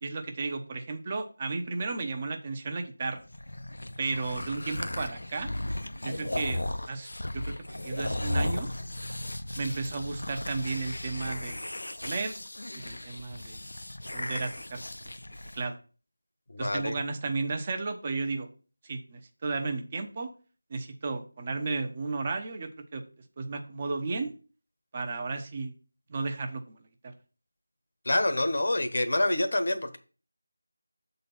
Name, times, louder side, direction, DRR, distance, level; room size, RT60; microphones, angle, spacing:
voice 1, 0.0-3.2 4.0-5.5 6.0-6.6 6.9-7.1 7.3-7.5 7.8-8.7 9.6-11.6 12.0-12.3 12.7-13.6 14.1-14.8 15.6-15.8 16.6-18.5 18.8-20.3 20.7-23.0 23.4-24.3 24.9-25.7 26.1-26.8, right 3 dB, 25° right, 5 dB, 0.8 m, -33 dB
sound 1, 3.2-15.6, left 1 dB, 80° left, 0.6 m, -36 dB
voice 2, 16.5-16.9 28.0-30.0, left 1 dB, 60° left, 9 dB, 1.0 m, -27 dB
6.8 x 4.0 x 5.6 m, 0.37 s
figure-of-eight pair, 170°, 0 cm